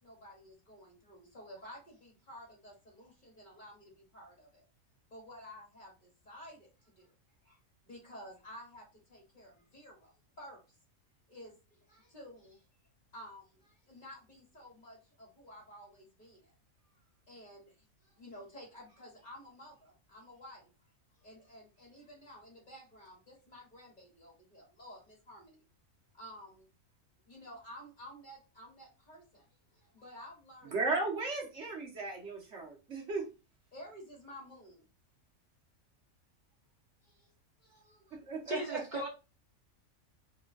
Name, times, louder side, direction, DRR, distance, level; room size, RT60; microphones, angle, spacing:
voice 1, 0.0-4.6 5.1-7.2 7.4-7.6 7.8-10.6 11.3-12.6 13.1-16.5 16.9-17.0 17.3-20.7 21.2-25.7 26.1-26.7 27.3-30.7 33.7-34.9 37.0-37.3 37.6-38.2, equal, 35° left, -2 dB, 2.2 m, -52 dB
voice 2, 30.7-33.2 38.1-38.8, right 3 dB, 55° right, 0 dB, 1.5 m, -35 dB
voice 3, 38.5-39.1, equal, 40° right, 1 dB, 0.9 m, -37 dB
4.8 x 3.8 x 2.4 m, 0.30 s
omnidirectional pair, 1.5 m